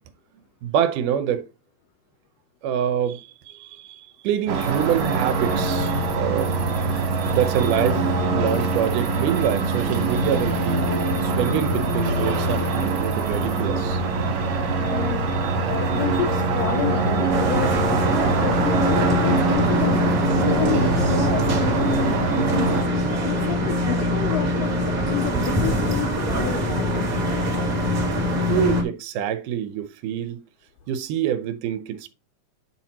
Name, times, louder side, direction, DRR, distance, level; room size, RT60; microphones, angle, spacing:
voice 1, 0.6-1.4 2.6-6.6 7.3-10.8 11.2-14.0 28.5-30.4 30.9-32.1, right 9 dB, 85° right, 2.3 m, -25 dB
sound 1, 4.5-22.8, right 3 dB, 60° right, 2.4 m, -23 dB
voice 2, 14.8-27.3, left 12 dB, 85° left, 1.4 m, -30 dB
sound 2, 17.3-28.8, left 1 dB, 40° right, 1.4 m, -24 dB
9.6 x 4.3 x 2.9 m
omnidirectional pair, 3.6 m